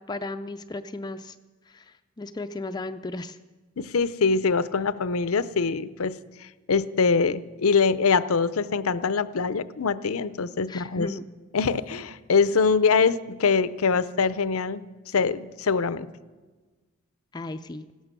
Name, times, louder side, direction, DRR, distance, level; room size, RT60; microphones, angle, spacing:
voice 1, 0.0-1.4 1.7-3.4 10.7-11.3 17.3-17.9, left 2 dB, 20° left, 9 dB, 0.4 m, -35 dB
voice 2, 3.8-6.2 6.4-11.1 11.5-14.8 15.1-16.1, left 5 dB, 90° left, 15 dB, 0.6 m, -23 dB
16.5 x 13.0 x 6.7 m, 1.3 s
head